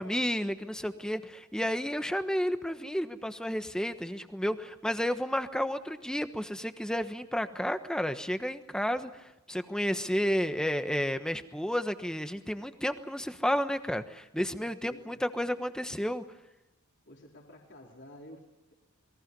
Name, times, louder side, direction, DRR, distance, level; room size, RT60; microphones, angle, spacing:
voice 1, 0.0-16.2, equal, 5° left, 9 dB, 1.2 m, -31 dB
voice 2, 14.4-15.2 17.1-18.7, left 1 dB, 50° left, 0 dB, 4.1 m, -51 dB
28.5 x 22.0 x 5.4 m, 0.98 s
head